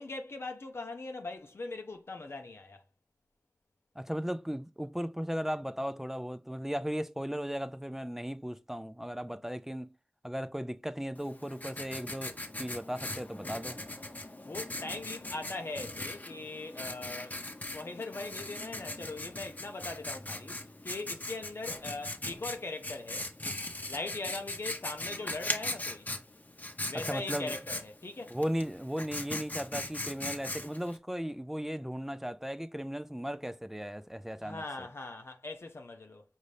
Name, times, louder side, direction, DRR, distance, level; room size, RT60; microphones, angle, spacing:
voice 1, 0.0-2.8 14.4-17.4 17.7-23.3 23.9-26.1 26.9-28.4 34.4-36.2, left 3 dB, 70° left, 0.6 m, -40 dB
voice 2, 4.0-9.9 10.2-13.8 27.0-27.5 28.3-34.9, equal, 10° right, 0.4 m, -36 dB
Writing, 11.2-31.0, left 1 dB, 40° left, 0.8 m, -40 dB
5.3 x 2.6 x 3.2 m
wide cardioid pair, 45°, 4 cm